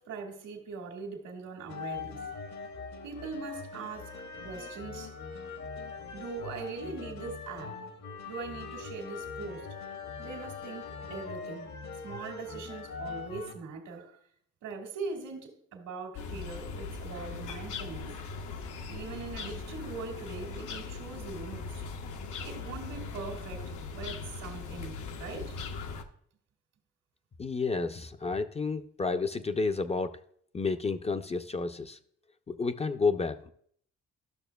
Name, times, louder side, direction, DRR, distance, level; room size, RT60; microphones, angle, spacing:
voice 1, 0.0-2.3 3.0-4.1 4.4-5.2 6.1-7.8 8.3-9.7 10.2-11.7 12.0-14.2 14.6-18.1 18.9-21.7 22.4-25.6, right 4 dB, 85° right, 1.8 m, -41 dB
sound 1, 1.7-13.5, left 5 dB, 65° left, 1.1 m, -42 dB
sound 2, 16.1-26.0, left 4 dB, 80° left, 0.8 m, -40 dB
voice 2, 27.4-30.2 30.5-32.0 32.5-33.5, left 4 dB, 20° left, 0.4 m, -31 dB
13.0 x 6.1 x 2.2 m
cardioid pair, 90°, 30 cm